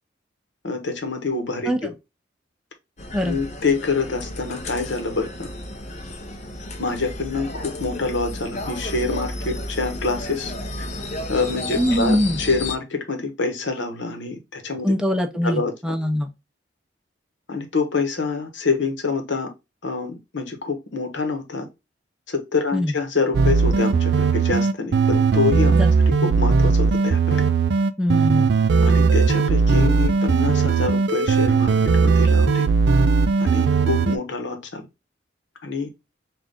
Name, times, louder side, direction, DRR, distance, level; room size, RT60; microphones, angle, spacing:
voice 1, 0.6-1.9 3.2-5.5 6.8-10.5 10.8-10.9 11.3-14.9 15.4-16.0 17.5-19.5 19.8-21.7 22.3-25.8 26.1-27.4 28.8-31.7 32.0-32.7 33.4-34.8 35.6-35.9, left 4 dB, 80° left, 1.0 m, -26 dB
sound 1, 3.0-12.7, left 1 dB, 40° left, 0.6 m, -32 dB
voice 2, 11.8-12.4 14.8-16.3 22.7-22.9 25.8-25.9 26.2-26.3 28.0-28.5, equal, 5° right, 0.6 m, -22 dB
sound 2, 23.3-34.2, right 4 dB, 65° right, 0.4 m, -18 dB
3.9 x 2.4 x 3.4 m
head